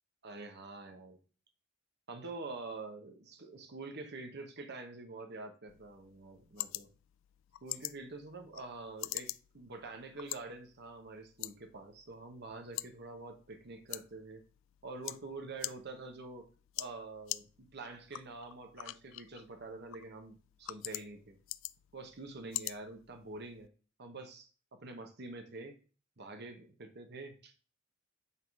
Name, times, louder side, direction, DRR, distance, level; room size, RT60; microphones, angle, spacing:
voice 1, 0.2-1.2 2.1-6.9 7.6-14.4 14.8-16.4 16.8-21.4 21.9-23.7 24.0-25.7 26.2-27.5, right 3 dB, 55° right, 5 dB, 1.1 m, -46 dB
sound 1, 5.7-23.7, left 17 dB, 70° left, 0.3 m, -46 dB
8.4 x 3.7 x 4.7 m, 0.38 s
head